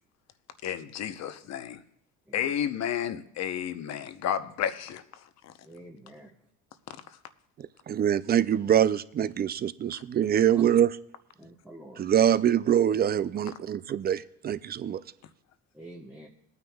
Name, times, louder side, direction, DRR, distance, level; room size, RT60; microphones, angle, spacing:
voice 1, 0.6-1.8 2.3-5.0 9.9-10.0, left 9 dB, 50° left, 10 dB, 0.9 m, -31 dB
voice 2, 5.6-6.3 11.4-12.1 15.7-16.3, right 1 dB, 5° right, -1 dB, 1.1 m, -47 dB
voice 3, 7.9-11.0 12.0-15.0, right 10 dB, 30° right, 16 dB, 0.4 m, -24 dB
21.5 x 9.4 x 2.3 m, 0.74 s
supercardioid pair, 95°, 33 cm